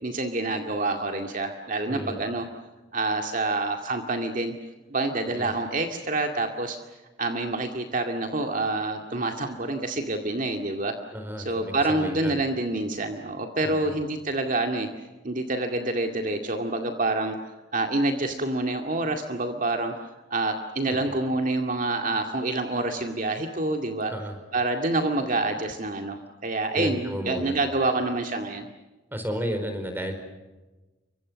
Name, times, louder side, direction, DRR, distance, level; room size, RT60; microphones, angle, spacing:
voice 1, 0.0-2.4 2.9-4.5 4.9-6.8 7.2-11.0 11.5-14.9 15.2-17.4 17.7-24.1 24.5-28.7, right 2 dB, 40° right, 4 dB, 2.1 m, -27 dB
voice 2, 1.9-2.2 5.3-5.5 11.1-12.4 13.6-14.0 20.9-21.1 24.1-24.4 26.7-27.5 29.1-30.1, equal, 10° right, 7 dB, 4.7 m, -33 dB
30.0 x 25.0 x 6.4 m, 1.1 s
head